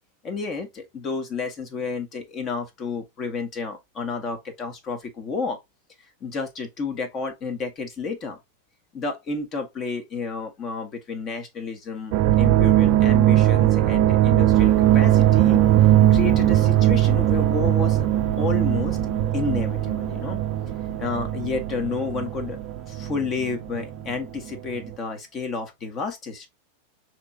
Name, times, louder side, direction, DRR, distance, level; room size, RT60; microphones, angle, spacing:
voice 1, 0.2-5.6 6.2-8.4 8.9-15.6 16.1-18.1 18.3-19.0 19.3-20.4 21.0-22.6 22.9-26.5, left 4 dB, 30° left, 1.2 m, -31 dB
sound 1, 12.1-24.2 24.5-24.9, right 13 dB, 45° right, 0.5 m, -20 dB
sound 2, 14.5-24.8, left 1 dB, 5° left, 0.8 m, -39 dB
6.5 x 3.0 x 2.4 m
figure-of-eight pair, 90°, 0 cm